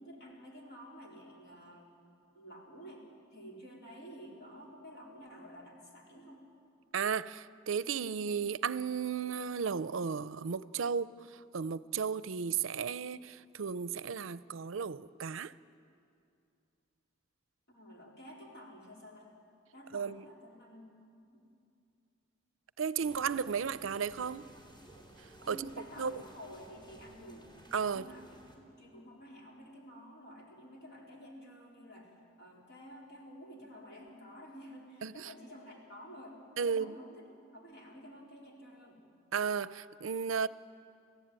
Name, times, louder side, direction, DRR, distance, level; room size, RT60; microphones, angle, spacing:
voice 1, 0.0-1.9 2.3-3.0 3.3-6.4 17.7-19.3 19.7-20.9 21.3-21.5 25.4-27.5 27.9-28.3 28.6-32.1 32.4-37.3 37.5-39.0, equal, 55° left, 4.3 m, -51 dB
voice 2, 6.9-11.1 11.5-15.5 19.9-20.2 22.8-24.4 25.5-25.7 26.0-26.1 27.7-28.0 35.0-35.1 36.6-36.9 39.3-40.5, right 6 dB, 70° right, 0.5 m, -34 dB
sound 1, 23.0-28.6, right 1 dB, 20° left, 3.0 m, -55 dB
26.0 x 15.5 x 8.9 m
head